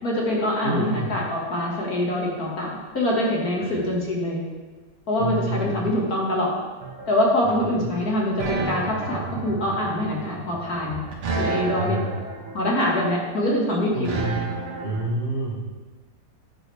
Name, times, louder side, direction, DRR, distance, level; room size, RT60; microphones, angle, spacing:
voice 1, 0.0-4.4 5.1-6.5 7.1-11.0 11.4-12.0 12.5-14.1, left 1 dB, 45° left, -3 dB, 2.2 m, -24 dB
voice 2, 0.6-1.1 3.6-3.9 5.2-5.8 7.8-7.9 11.5-12.1 13.9-14.4 14.8-15.6, right 1 dB, 35° right, -4 dB, 1.0 m, -28 dB
sound 1, 6.8-15.0, right 3 dB, 80° right, 2.4 m, -31 dB
11.0 x 8.9 x 3.4 m, 1.3 s
omnidirectional pair, 2.4 m